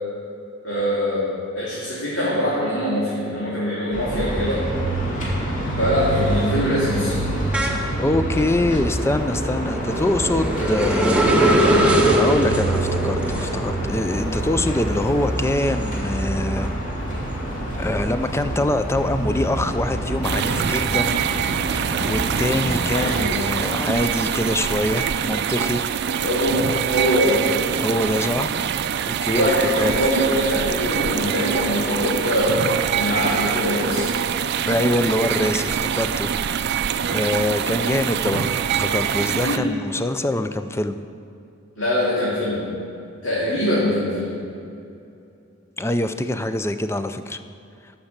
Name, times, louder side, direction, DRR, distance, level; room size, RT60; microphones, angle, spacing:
voice 1, 0.6-1.2 1.5-4.6 5.8-7.1 22.9-23.5 26.2-27.4 29.3-32.6 32.9-34.1 39.4-39.7 41.8-42.6 43.2-44.3, equal, 70° left, -9 dB, 2.8 m, -23 dB
sound 1, 3.9-23.3, right 1 dB, 40° left, 2.1 m, -27 dB
sound 2, 4.8-5.0 5.4-16.7 17.1-18.8, right 1 dB, 5° right, 1.1 m, -23 dB
voice 2, 8.0-11.3 11.7-16.7 17.8-21.2 22.0-25.9 27.8-28.6 29.0-29.5 29.8-30.0 34.6-36.6 37.0-41.0 45.8-47.4, left 1 dB, 15° left, 10 dB, 0.4 m, -24 dB
sound 3, 20.2-39.6, right 8 dB, 55° right, 0.4 m, -24 dB
12.0 x 5.9 x 7.3 m, 2.6 s
head